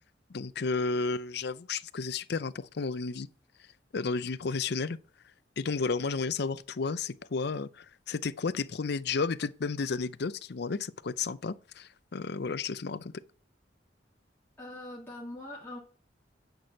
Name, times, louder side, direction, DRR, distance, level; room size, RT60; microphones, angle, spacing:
voice 1, 0.3-3.3 3.9-5.0 5.6-13.1, left 4 dB, 65° left, 0.6 m, -32 dB
voice 2, 14.6-15.8, left 1 dB, 10° left, 2.0 m, -42 dB
9.3 x 6.1 x 5.8 m
head